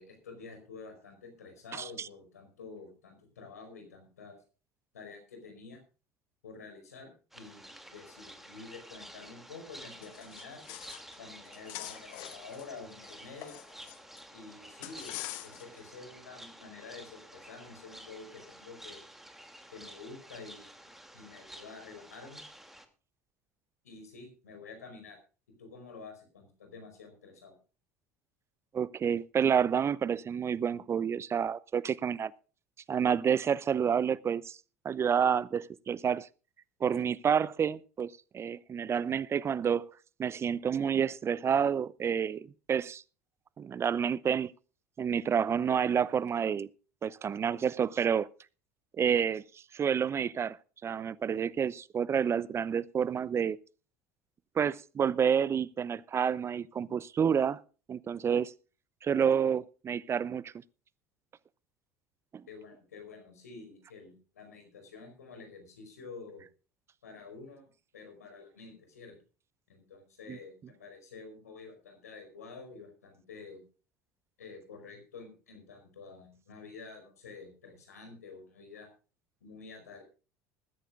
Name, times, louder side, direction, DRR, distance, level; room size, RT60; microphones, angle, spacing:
voice 1, 0.0-4.4 4.9-5.8 6.4-10.6 11.2-13.6 14.3-19.0 19.7-20.8 21.1-22.4 23.8-25.2 25.6-27.5 62.5-66.4 67.0-67.7 67.9-69.2 69.7-73.6 74.4-78.9 79.4-80.0, left 4 dB, 80° left, 4.9 m, -49 dB
sound 1, 7.3-22.9, right 1 dB, 5° right, 2.6 m, -51 dB
sound 2, 10.0-11.2 11.4-14.2 14.8-15.8, left 17 dB, 60° left, 1.4 m, -44 dB
voice 2, 28.7-32.3 32.9-34.6 34.8-36.3 36.8-39.9 40.2-43.0 43.6-44.5 45.0-46.7 47.0-48.3 49.0-49.4 49.7-50.6 50.8-53.6 54.6-57.6 57.9-58.5 59.0-60.5 62.3-62.4 70.3-70.4, right 7 dB, 30° right, 0.6 m, -29 dB
20.5 x 13.5 x 2.5 m
hypercardioid pair, 70°, 8 cm